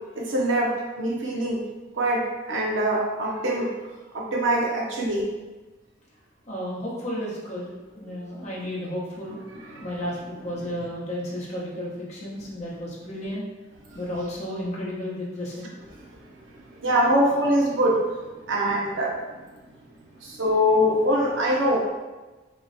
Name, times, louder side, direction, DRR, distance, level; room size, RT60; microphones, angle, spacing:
voice 1, 0.1-1.6 1.9-3.7 4.1-5.3 9.7-9.9 10.6-10.7 16.8-18.1 18.5-19.2 20.2-21.8, equal, 80° right, -2 dB, 0.7 m, -23 dB
voice 2, 6.5-7.6 8.0-9.4 9.8-13.4 13.9-15.7, equal, 35° left, -6 dB, 0.9 m, -32 dB
3.1 x 2.2 x 4.0 m, 1.2 s
head